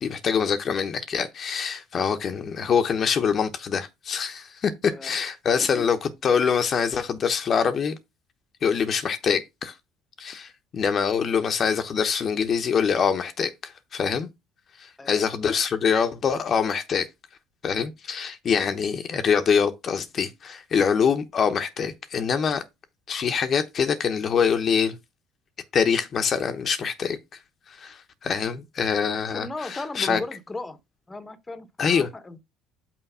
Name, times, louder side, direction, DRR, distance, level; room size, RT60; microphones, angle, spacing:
voice 1, 0.0-8.0 8.6-9.7 10.2-14.3 14.8-17.1 17.6-22.6 23.1-25.0 25.7-27.4 27.7-30.2 31.8-32.1, left 6 dB, 45° left, 0.9 m, -24 dB
voice 2, 29.3-30.8 31.1-32.4, left 2 dB, 20° left, 1.0 m, -36 dB
5.9 x 4.5 x 5.5 m
supercardioid pair, 85°, 0 cm